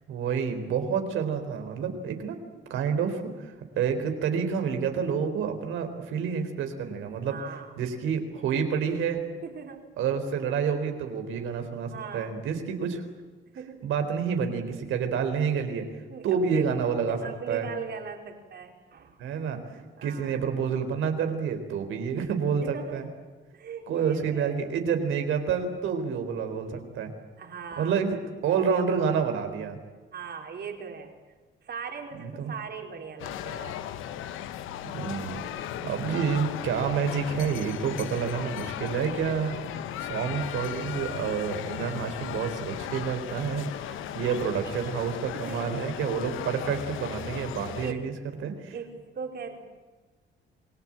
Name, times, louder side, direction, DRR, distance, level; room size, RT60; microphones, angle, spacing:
voice 1, 0.1-2.4 2.7-7.4 7.8-9.3 10.0-13.0 13.8-15.9 16.2-17.2 17.5-17.7 19.2-19.6 20.0-23.1 23.9-27.1 27.8-29.8 32.1-32.5 34.9-48.1 48.4-48.7, right 6 dB, 85° right, 6 dB, 4.0 m, -29 dB
voice 2, 7.2-7.7 9.4-9.9 11.9-12.3 13.5-13.9 15.8-16.8 17.1-19.2 19.7-20.4 22.6-23.0 23.5-24.7 27.4-28.0 30.1-31.2 31.6-33.8 45.3-45.7 47.8-48.1 48.7-49.6, right 6 dB, 55° right, 3 dB, 4.7 m, -39 dB
sound 1, 33.2-47.9, left 11 dB, 90° left, 1.3 m, -36 dB
27.5 x 19.0 x 8.9 m, 1.3 s
cardioid pair, 90°, 20 cm